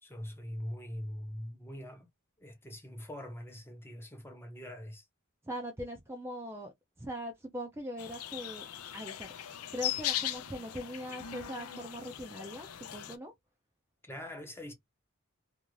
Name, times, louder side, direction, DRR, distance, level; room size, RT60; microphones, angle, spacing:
voice 1, 0.0-2.1 2.4-5.1 14.0-14.7, equal, 10° left, 0.7 m, -43 dB
voice 2, 5.4-8.7 8.9-13.3, equal, 10° right, 0.4 m, -41 dB
sound 1, 8.0-13.2, left 11 dB, 80° left, 0.5 m, -39 dB
2.5 x 2.5 x 3.0 m
head